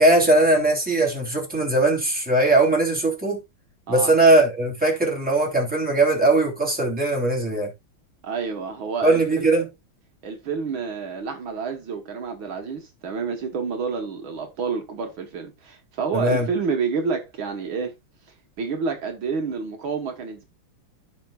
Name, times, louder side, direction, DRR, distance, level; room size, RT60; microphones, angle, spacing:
voice 1, 0.0-3.4 3.9-7.7 9.0-9.7 16.1-16.5, right 2 dB, 5° right, 3.1 m, -19 dB
voice 2, 8.2-9.5 10.2-17.9 18.6-20.4, right 5 dB, 70° right, 2.0 m, -29 dB
15.0 x 5.8 x 2.4 m
omnidirectional pair, 2.4 m